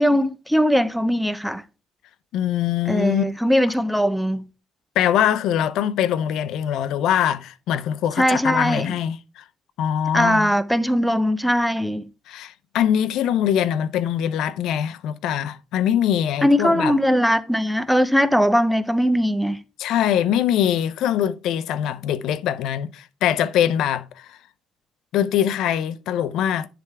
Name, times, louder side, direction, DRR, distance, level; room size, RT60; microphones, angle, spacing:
voice 1, 0.0-1.6 2.9-4.4 8.2-8.9 10.1-12.1 16.4-19.6, equal, ahead, 0.5 m, -20 dB
voice 2, 2.3-3.2 5.0-9.4 9.8-10.5 12.3-17.0 19.8-24.4 25.1-26.7, left 10 dB, 75° left, 0.5 m, -23 dB
10.0 x 3.4 x 4.7 m
cardioid pair, 130°, 0 cm